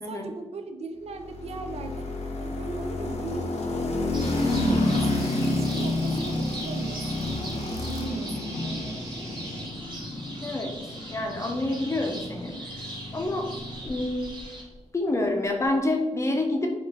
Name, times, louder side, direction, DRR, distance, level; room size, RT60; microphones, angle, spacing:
voice 1, 0.0-2.1 2.4-3.5 4.6-9.1, right 3 dB, 60° right, 6 dB, 0.5 m, -38 dB
sound 1, 1.2-14.4, left 2 dB, 65° left, 0.6 m, -30 dB
sound 2, 4.1-14.6, right 1 dB, 40° right, 1.1 m, -41 dB
sound 3, 4.3-9.6, right 1 dB, 25° right, 0.8 m, -42 dB
voice 2, 10.4-12.8 13.1-13.5 13.8-14.4 14.9-16.7, left 2 dB, 25° left, 3 dB, 0.6 m, -28 dB
3.4 x 3.0 x 4.0 m, 1.2 s
wide cardioid pair, 165°, 12 cm